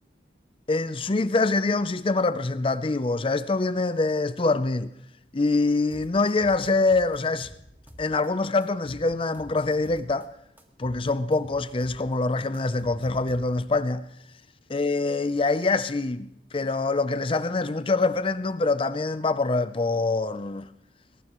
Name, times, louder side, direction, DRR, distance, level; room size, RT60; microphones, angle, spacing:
voice 1, 0.7-4.9 5.3-7.5 8.0-10.3 10.8-14.1 14.7-20.7, left 3 dB, 30° left, 0.5 m, -25 dB
sound 1, 5.9-8.3 8.6-10.3 10.6-13.8, equal, 10° right, 1.8 m, -48 dB
22.0 x 18.5 x 3.1 m
head